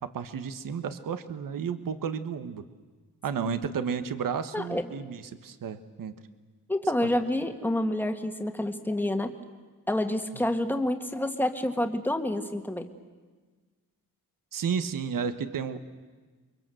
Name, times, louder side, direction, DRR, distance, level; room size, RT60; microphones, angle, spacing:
voice 1, 0.0-2.6 3.2-6.1 14.5-15.8, right 7 dB, 65° right, 10 dB, 1.3 m, -32 dB
voice 2, 4.5-4.9 6.7-9.3 9.9-12.9, left 1 dB, 5° left, 6 dB, 1.8 m, -28 dB
29.5 x 23.5 x 7.8 m, 1.4 s
wide cardioid pair, 125°, 36 cm